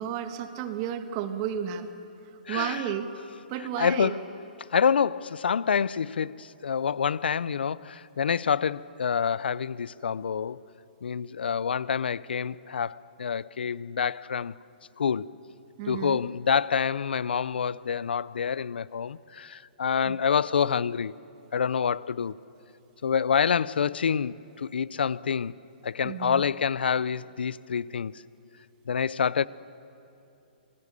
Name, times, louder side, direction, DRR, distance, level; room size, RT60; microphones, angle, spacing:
voice 1, 0.0-1.9 2.5-3.1 3.5-4.1 15.8-16.2 20.0-20.2 26.0-26.4, right 9 dB, 35° right, 1.5 m, -32 dB
voice 2, 2.5-2.8 3.8-4.2 4.7-10.6 11.0-14.5 15.0-15.3 15.9-21.1 21.5-22.3 23.0-25.5 25.8-28.2 28.9-29.5, left 7 dB, 80° left, 0.5 m, -27 dB
26.5 x 19.5 x 6.8 m
hypercardioid pair, 135°, 5 cm